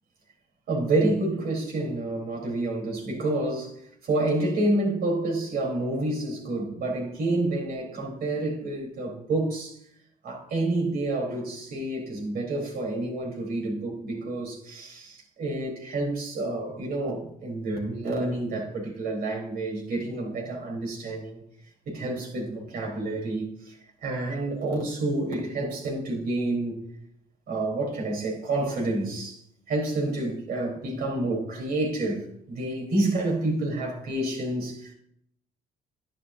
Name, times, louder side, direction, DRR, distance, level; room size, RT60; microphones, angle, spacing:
voice 1, 0.7-3.8 4.0-9.8 10.2-21.4 21.9-26.8 27.5-29.4 29.7-34.9, right 2 dB, 60° right, 4.2 m, -29 dB
11.0 x 11.0 x 2.8 m
cardioid pair, 110°, 17 cm